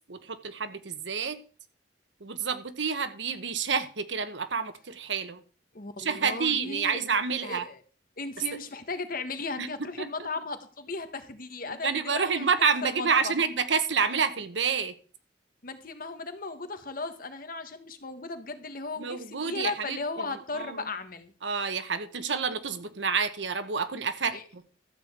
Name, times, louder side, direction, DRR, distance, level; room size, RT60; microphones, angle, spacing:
voice 1, 0.1-1.4 2.2-5.4 6.0-7.7 8.5-8.6 9.6-9.7 10.0-10.1 11.7-14.9 19.0-20.0 20.6-20.8 21.4-24.6, right 5 dB, 80° right, 1.1 m, -28 dB
voice 2, 5.7-7.0 7.4-7.8 8.2-12.5 12.8-13.3 15.6-21.3 24.3-24.4, left 3 dB, 50° left, 1.5 m, -36 dB
12.5 x 5.2 x 8.1 m
head